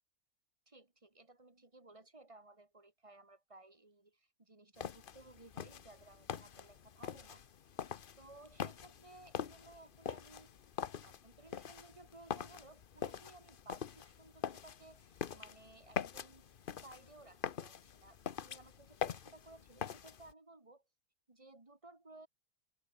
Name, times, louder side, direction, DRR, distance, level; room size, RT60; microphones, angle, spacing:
voice 1, 0.7-7.4 8.1-10.6 10.9-16.5 16.8-20.8 21.3-22.3, right 2 dB, 20° right, 2.2 m, -59 dB
sound 1, 4.8-20.3, left 8 dB, 45° left, 0.8 m, -44 dB
open air
omnidirectional pair, 1.5 m